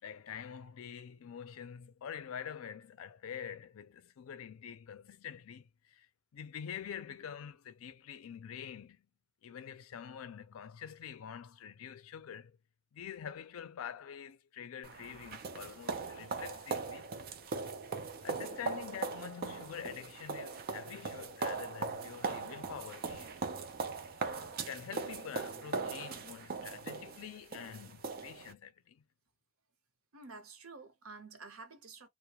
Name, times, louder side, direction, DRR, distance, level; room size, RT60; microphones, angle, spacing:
voice 1, 0.0-9.1 9.4-12.6 12.9-17.1 18.2-23.4 24.2-29.0, left 8 dB, 85° left, 0.4 m, -46 dB
sound 1, 14.8-28.5, right 4 dB, 45° right, 0.4 m, -40 dB
voice 2, 30.1-32.1, right 4 dB, 80° right, 0.7 m, -50 dB
2.3 x 2.0 x 2.8 m
head